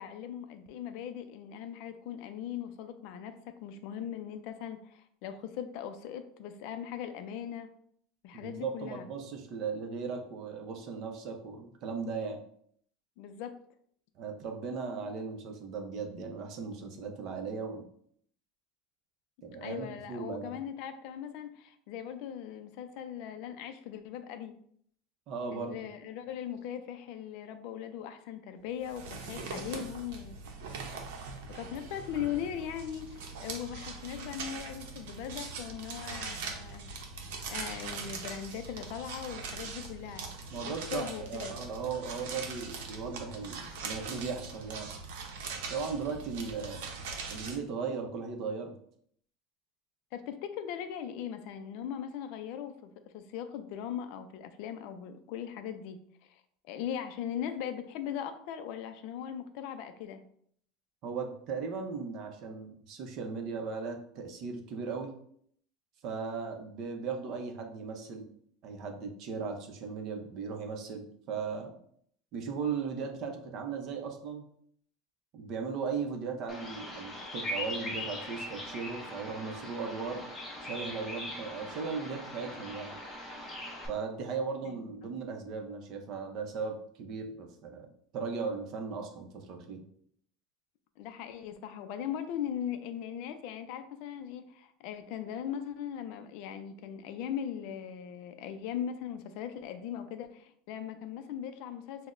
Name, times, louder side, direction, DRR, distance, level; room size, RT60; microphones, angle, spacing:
voice 1, 0.0-7.7 8.2-9.1 13.2-13.6 19.6-24.5 25.5-30.4 31.5-36.8 37.5-40.3 40.7-41.6 50.1-60.2 84.6-85.1 91.0-102.1, left 9 dB, 50° left, 9 dB, 0.3 m, -39 dB
voice 2, 8.3-12.4 14.2-17.9 19.4-20.6 25.3-25.8 40.5-44.9 45.7-46.9 47.3-48.7 61.0-65.1 66.0-68.3 68.6-71.7 72.3-74.4 75.3-80.3 80.6-82.9 83.9-89.8, right 5 dB, 40° right, 3 dB, 0.6 m, -37 dB
sound 1, 28.8-47.6, right 4 dB, 80° right, 0.6 m, -41 dB
Bird vocalization bird call bird song, 76.5-83.9, left 1 dB, 10° left, 0.6 m, -40 dB
5.8 x 2.0 x 2.5 m, 0.64 s
supercardioid pair, 170°, 0 cm